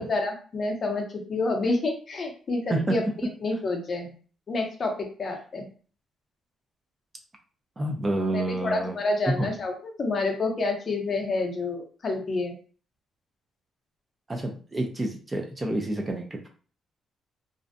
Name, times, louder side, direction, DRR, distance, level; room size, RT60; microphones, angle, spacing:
voice 1, 0.0-3.0 3.4-4.1 4.5-5.7 8.3-12.6, left 2 dB, 35° left, 2 dB, 0.6 m, -28 dB
voice 2, 7.8-9.0 9.4-9.5 14.3-16.5, right 1 dB, 20° right, 2 dB, 0.4 m, -28 dB
2.5 x 2.1 x 2.5 m, 0.40 s
cardioid pair, 145°, 0 cm